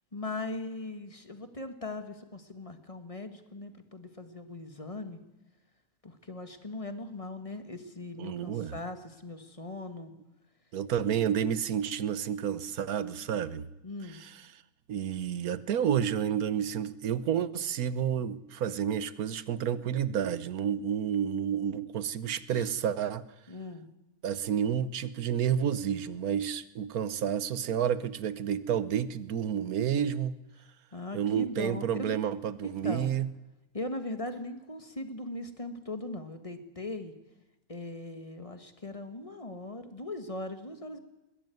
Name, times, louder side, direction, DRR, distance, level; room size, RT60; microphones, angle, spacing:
voice 1, 0.1-5.2 6.0-10.1 11.2-11.3 13.8-14.2 22.5-22.7 23.5-23.9 30.9-32.2 32.6-33.1 33.7-37.1 37.7-41.0, left 2 dB, 25° left, 7 dB, 1.8 m, -39 dB
voice 2, 8.2-8.8 10.7-13.7 14.1-14.4 14.9-23.2 24.2-30.4 31.1-33.3, right 9 dB, 75° right, 15 dB, 1.4 m, -30 dB
21.5 x 16.5 x 9.4 m, 1.0 s
omnidirectional pair, 1.6 m